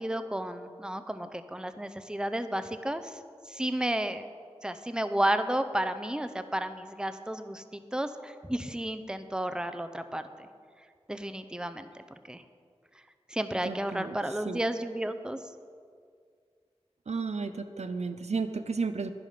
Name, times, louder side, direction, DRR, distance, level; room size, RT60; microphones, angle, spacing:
voice 1, 0.0-3.1 3.5-4.3 4.6-10.5 11.1-11.9 12.3-12.4 13.3-15.4, right 1 dB, 5° right, 9 dB, 0.6 m, -32 dB
voice 2, 13.6-14.2 14.4-14.6 17.1-19.1, right 4 dB, 75° right, 9 dB, 0.6 m, -33 dB
10.5 x 10.5 x 5.0 m, 2.1 s
wide cardioid pair, 50°, 11 cm